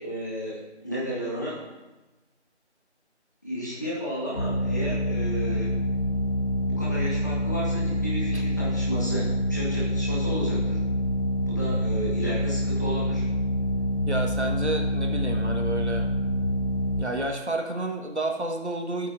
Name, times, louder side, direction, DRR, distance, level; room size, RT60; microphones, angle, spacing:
voice 1, 0.0-1.7 3.4-5.7 6.6-10.8 11.5-13.2, equal, 15° left, -8 dB, 1.6 m, -33 dB
sound 1, 4.4-17.0, equal, 75° left, 1.8 m, -26 dB
voice 2, 14.1-16.1 17.0-19.1, right 2 dB, 75° right, 3 dB, 1.5 m, -30 dB
14.0 x 8.4 x 2.6 m, 1.1 s
figure-of-eight pair, 170°, 35 cm